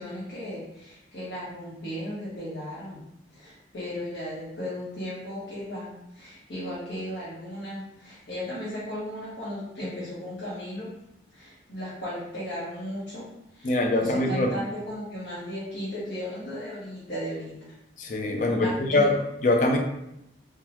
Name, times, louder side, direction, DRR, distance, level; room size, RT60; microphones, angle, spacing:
voice 1, 0.0-3.0 3.3-10.9 11.3-17.7 18.5-19.1, equal, 70° left, -11 dB, 1.1 m, -36 dB
voice 2, 13.6-14.5 18.0-19.1 19.4-19.8, left 2 dB, 45° left, 3 dB, 0.4 m, -23 dB
3.6 x 2.2 x 2.9 m, 0.83 s
head